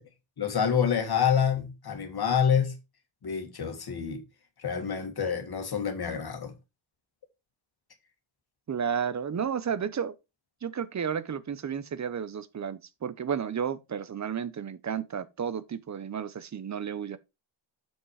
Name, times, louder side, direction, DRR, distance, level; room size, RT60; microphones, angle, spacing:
voice 1, 0.4-2.7 3.2-4.2 4.6-6.5, left 7 dB, 50° left, 2.0 m, -27 dB
voice 2, 8.7-10.2 10.6-17.2, right 7 dB, 35° right, 0.7 m, -32 dB
7.4 x 6.0 x 4.7 m
wide cardioid pair, 160°, 50 cm